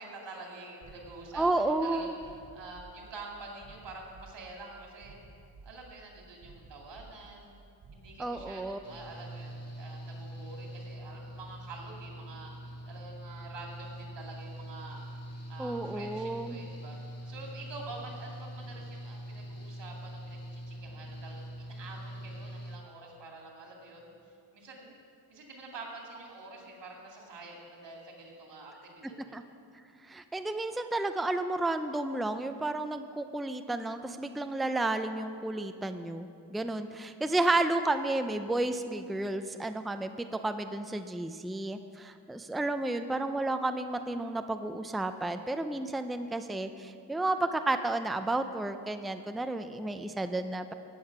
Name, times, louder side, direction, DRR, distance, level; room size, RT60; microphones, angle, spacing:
voice 1, 0.0-2.1 2.5-5.2 5.6-7.6 7.9-12.5 12.9-15.1 15.5-17.0 17.3-24.1 24.5-25.0 25.3-29.4 44.0-44.1, right 3 dB, 85° right, -1 dB, 2.6 m, -47 dB
sound 1, 0.8-9.1, right 3 dB, 60° right, 3.8 m, -54 dB
voice 2, 1.3-2.1 8.2-8.8 15.6-16.6 29.3-29.4 30.1-50.7, right 2 dB, ahead, 8 dB, 0.5 m, -32 dB
Engine / Mechanical fan, 8.8-22.8, equal, 35° left, 1.5 m, -43 dB
15.5 x 8.5 x 6.0 m, 2.5 s
cardioid pair, 75°, 42 cm